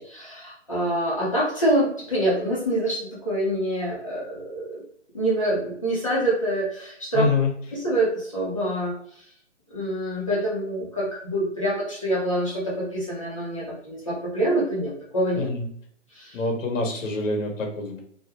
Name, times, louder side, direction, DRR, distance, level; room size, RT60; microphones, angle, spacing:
voice 1, 0.0-4.8 5.1-7.3 7.7-9.0 9.7-15.5 16.1-16.4, right 1 dB, 25° left, -7 dB, 0.6 m, -26 dB
voice 2, 7.1-7.5 15.4-15.7 16.3-18.0, left 3 dB, 80° left, 1 dB, 0.8 m, -25 dB
2.3 x 2.0 x 2.8 m, 0.65 s
hypercardioid pair, 170°, 38 cm